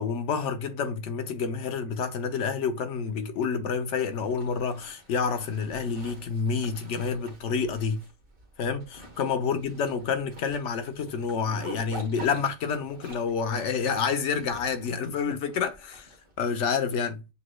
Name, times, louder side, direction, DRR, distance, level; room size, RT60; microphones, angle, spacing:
voice 1, 0.0-8.0 8.6-16.1 16.4-17.2, left 5 dB, 80° left, 1.0 m, -28 dB
Zipper (clothing), 4.0-16.5, right 1 dB, 50° right, 1.5 m, -48 dB
6.9 x 3.1 x 2.2 m
omnidirectional pair, 1.2 m